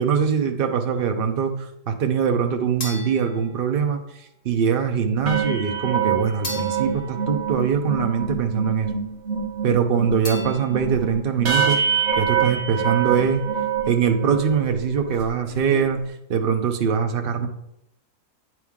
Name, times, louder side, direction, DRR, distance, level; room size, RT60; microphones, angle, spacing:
voice 1, 0.0-9.0 9.6-11.8 12.2-13.4 13.9-17.5, right 7 dB, 80° right, 6 dB, 0.5 m, -23 dB
sound 1, 2.8-4.3 6.4-8.3 10.2-11.4, left 2 dB, 60° left, 2.1 m, -38 dB
sound 2, 5.2-14.6 15.1-15.3 15.5-15.8, right 6 dB, 50° right, 1.3 m, -25 dB
9.0 x 4.6 x 3.6 m, 0.79 s
omnidirectional pair, 1.8 m